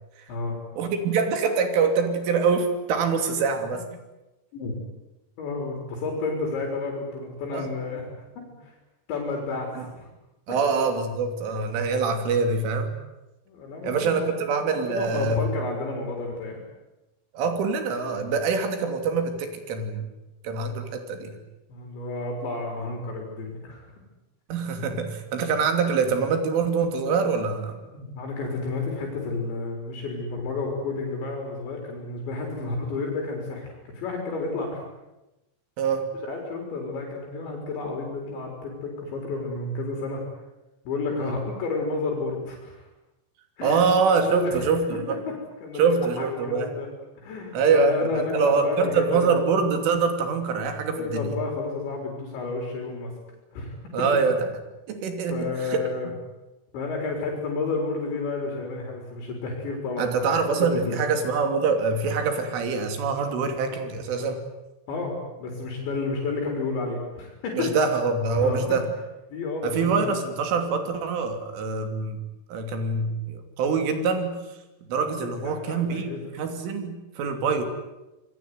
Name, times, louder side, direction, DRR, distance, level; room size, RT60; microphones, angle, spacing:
voice 1, 0.8-3.8 7.5-7.7 9.8-9.9 10.5-12.9 13.8-15.5 17.3-20.1 20.4-21.4 24.5-27.8 32.6-32.7 35.8-36.1 41.2-41.3 43.6-45.2 45.8-46.7 47.5-51.3 53.9-54.4 54.9-56.1 60.0-64.4 67.6-68.9 69.6-72.2 72.5-74.4 74.9-77.6, right 5 dB, 85° right, 6 dB, 5.5 m, -24 dB
voice 2, 5.4-8.1 8.6-8.8 9.1-10.1 13.5-14.3 14.8-16.7 21.7-23.9 27.9-34.8 36.3-40.2 40.9-42.9 43.6-43.8 44.2-44.7 45.3-45.4 45.6-46.9 47.2-49.3 50.9-53.1 53.5-53.7 55.3-56.1 56.7-60.3 60.7-61.1 64.9-67.7 68.3-68.6 69.3-70.2 75.4-76.2, left 3 dB, 70° left, 1 dB, 6.3 m, -31 dB
27.5 x 21.0 x 9.5 m, 1.0 s
omnidirectional pair, 5.5 m